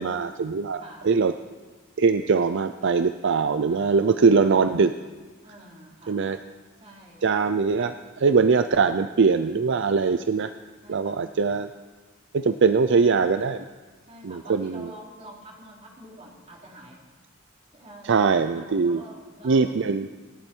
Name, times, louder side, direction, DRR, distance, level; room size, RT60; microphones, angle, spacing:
voice 1, 0.0-1.3 2.0-4.9 6.1-6.4 7.2-10.5 10.9-11.7 12.3-13.7 14.2-14.9 18.1-19.0 19.4-20.1, right 5 dB, 65° right, 10 dB, 0.5 m, -22 dB
voice 2, 0.8-1.1 2.0-2.4 3.7-4.3 5.4-6.3 6.8-7.2 10.8-11.3 14.1-17.0 17.7-19.8, right 1 dB, 30° right, -2 dB, 3.7 m, -46 dB
27.5 x 11.0 x 4.5 m, 1.3 s
head